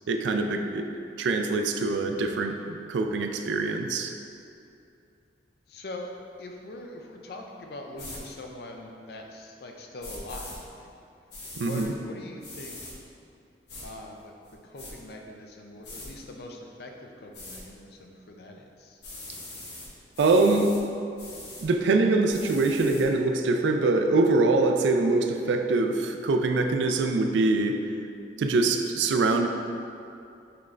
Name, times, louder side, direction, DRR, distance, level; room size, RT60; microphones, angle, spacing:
voice 1, 0.1-0.9 1.2-4.1 11.6-11.9 20.2-20.8 21.6-27.8 28.4-29.5, right 3 dB, 80° right, 5 dB, 0.3 m, -24 dB
voice 2, 5.7-6.1 6.4-10.9 11.5-12.8 13.8-19.0, left 1 dB, 60° left, 2 dB, 0.4 m, -42 dB
sound 1, 8.0-8.2 10.0-10.6 11.3-11.9 12.4-12.9 13.7-13.9 14.4-14.9 15.8-16.1 17.3-17.6 19.0-19.9 20.1-20.8 21.2-21.7 22.3-23.0, left 2 dB, 75° left, 1.2 m, -42 dB
5.9 x 3.2 x 2.5 m, 2.6 s
head